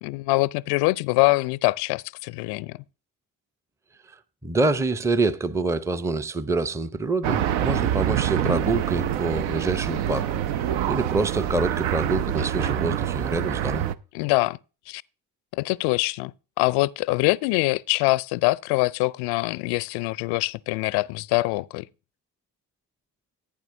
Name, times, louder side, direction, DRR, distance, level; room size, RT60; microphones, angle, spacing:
voice 1, 0.0-2.8 14.1-14.6 14.9-15.0 15.5-16.3 16.6-21.9, left 22 dB, 55° left, 0.5 m, -24 dB
voice 2, 4.1-10.4 10.9-13.8, right 3 dB, 5° right, 0.6 m, -26 dB
sound 1, 7.2-13.9, right 11 dB, 60° right, 0.7 m, -26 dB
15.0 x 8.8 x 2.6 m
figure-of-eight pair, 45°, 48 cm